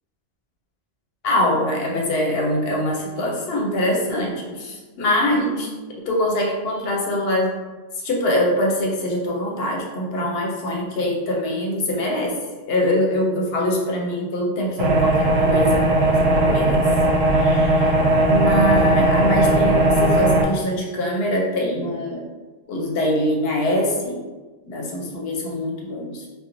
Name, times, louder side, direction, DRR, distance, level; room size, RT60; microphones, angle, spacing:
voice 1, 1.2-5.7 6.1-7.5 8.0-12.3 12.7-15.9 16.4-16.8 17.3-17.9 18.2-22.2 22.7-24.2 24.6-26.3, left 1 dB, 75° left, -1 dB, 0.8 m, -23 dB
sound 1, 14.8-20.4, right 1 dB, 80° right, 0.8 m, -17 dB
2.5 x 2.2 x 2.8 m, 1.2 s
omnidirectional pair, 1.1 m